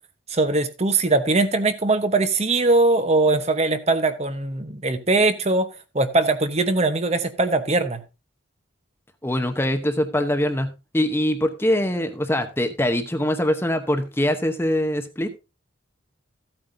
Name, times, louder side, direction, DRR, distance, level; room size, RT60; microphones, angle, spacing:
voice 1, 0.3-5.7 5.9-8.0, right 2 dB, 30° right, 9 dB, 0.9 m, -21 dB
voice 2, 9.2-10.7 10.9-15.3, left 1 dB, 10° left, 7 dB, 0.8 m, -23 dB
14.5 x 8.8 x 2.6 m, 0.27 s
head